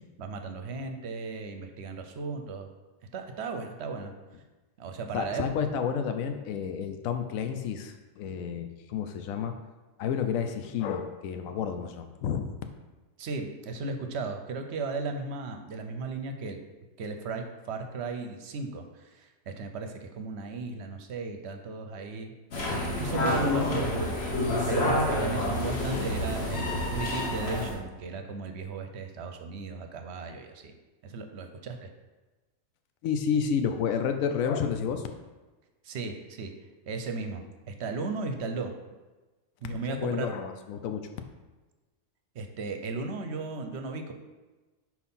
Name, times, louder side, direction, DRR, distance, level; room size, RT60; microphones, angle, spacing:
voice 1, 0.2-2.7 3.1-4.1 4.8-5.4 13.2-16.6 17.0-22.3 23.0-30.7 31.0-31.9 35.8-36.5 36.9-38.7 39.6-40.3 42.3-44.1, right 4 dB, 60° right, 6 dB, 0.8 m, -36 dB
voice 2, 5.1-9.6 10.0-12.5 33.0-35.0 39.6-41.1, left 7 dB, 85° left, 7 dB, 1.0 m, -30 dB
sound 1, 22.5-27.7, left 1 dB, 55° left, 1.3 m, -28 dB
4.5 x 4.2 x 5.4 m, 1.2 s
omnidirectional pair, 1.4 m